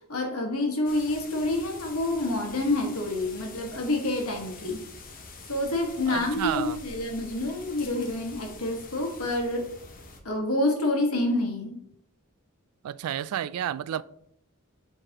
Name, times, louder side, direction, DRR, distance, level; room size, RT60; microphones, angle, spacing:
voice 1, 0.1-4.8 5.5-9.7 10.2-11.8, left 2 dB, 80° left, 1.4 m, -28 dB
sound 1, 0.8-10.2, left 3 dB, 40° left, 0.9 m, -45 dB
voice 2, 6.1-6.8 12.8-14.0, right 10 dB, 85° right, 0.3 m, -31 dB
7.6 x 4.7 x 2.9 m
head